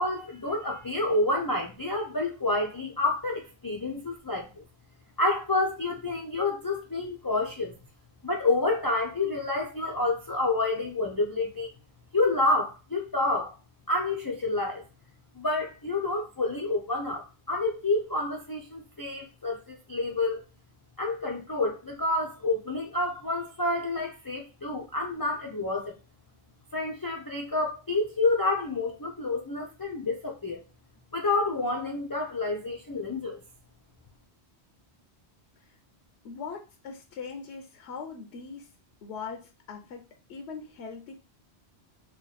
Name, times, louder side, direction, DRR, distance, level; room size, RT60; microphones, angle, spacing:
voice 1, 0.0-4.6 5.2-7.7 8.2-11.7 12.1-13.5 13.9-14.8 15.4-20.4 21.0-25.9 26.7-30.6 31.1-33.4, left 2 dB, 35° left, 0.3 m, -28 dB
voice 2, 36.2-38.7 39.0-41.1, left 5 dB, 80° left, 0.8 m, -41 dB
2.9 x 2.3 x 4.0 m
omnidirectional pair, 1.1 m